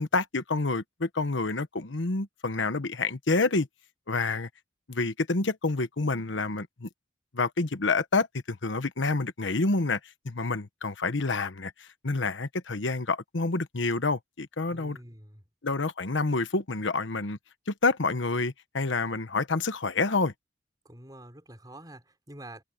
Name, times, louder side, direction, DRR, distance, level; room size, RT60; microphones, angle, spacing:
voice 1, 0.0-3.7 4.1-4.5 4.9-6.9 7.3-10.0 10.2-15.0 15.6-17.4 17.7-20.3, left 3 dB, 90° left, 1.2 m, -28 dB
voice 2, 14.7-15.4 20.8-22.6, right 1 dB, 20° right, 5.7 m, -47 dB
head